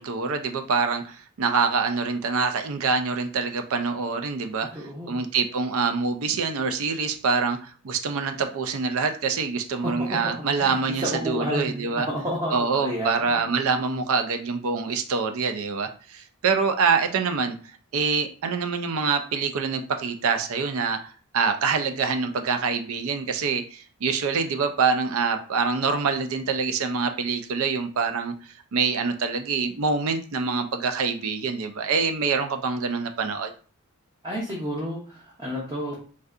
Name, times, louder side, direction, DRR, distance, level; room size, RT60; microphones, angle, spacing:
voice 1, 0.0-12.1 12.5-17.5 17.9-33.5, right 5 dB, 65° right, 7 dB, 0.4 m, -25 dB
voice 2, 4.7-5.2 9.8-10.1 10.6-13.6 34.2-35.9, equal, 20° right, -4 dB, 0.7 m, -31 dB
3.3 x 2.7 x 2.4 m, 0.40 s
head